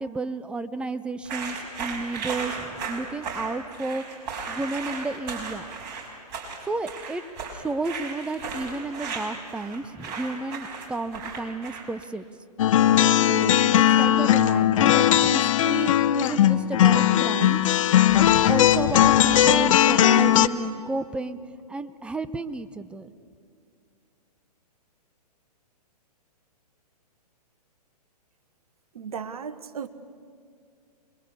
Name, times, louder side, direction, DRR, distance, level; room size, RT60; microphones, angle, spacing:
voice 1, 0.0-5.7 6.7-7.2 7.5-12.3 13.2-17.7 18.2-21.4 21.7-23.1, right 3 dB, 5° right, 12 dB, 0.6 m, -32 dB
sound 1, 1.2-12.0, right 5 dB, 40° right, 5.4 m, -35 dB
sound 2, 12.6-20.5, left 11 dB, 50° left, 0.8 m, -19 dB
voice 2, 28.9-29.9, right 7 dB, 65° right, 10 dB, 1.3 m, -35 dB
26.5 x 22.0 x 6.8 m, 2.3 s
figure-of-eight pair, 120°, 21 cm